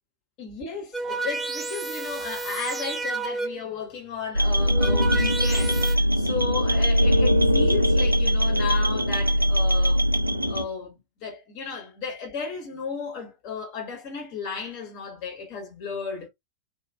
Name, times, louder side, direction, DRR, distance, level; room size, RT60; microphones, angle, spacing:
voice 1, 0.4-10.0 10.4-16.3, left 5 dB, 45° left, 1.3 m, -34 dB
sound 1, 0.9-3.8 4.5-6.0, right 3 dB, 10° left, 0.5 m, -31 dB
sound 2, 4.3-10.6, equal, 90° right, 0.4 m, -21 dB
2.7 x 2.6 x 2.2 m
figure-of-eight pair, 90°, 0 cm